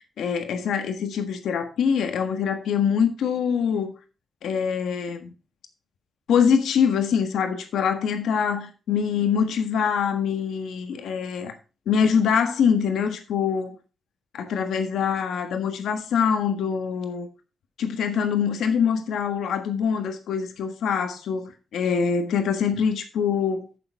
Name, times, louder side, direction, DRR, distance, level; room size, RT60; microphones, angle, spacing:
voice 1, 0.0-3.9 4.4-5.3 6.3-11.5 11.9-13.8 14.3-17.3 17.8-23.7, left 7 dB, 85° left, 1.5 m, -24 dB
9.6 x 6.9 x 4.7 m
wide cardioid pair, 180°, 0 cm